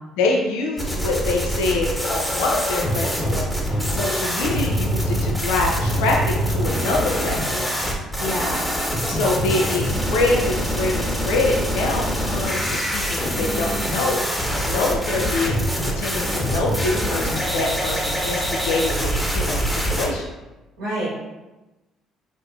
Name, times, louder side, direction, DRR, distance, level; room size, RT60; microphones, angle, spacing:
voice 1, 0.2-7.8 9.1-20.3, left 2 dB, 80° left, 0 dB, 0.3 m, -25 dB
sound 1, 0.8-20.1, equal, 5° left, 1.1 m, -24 dB
voice 2, 8.2-8.6 20.8-21.1, equal, 85° right, -10 dB, 1.1 m, -27 dB
3.4 x 2.5 x 2.3 m, 1.1 s
hypercardioid pair, 55°, 0 cm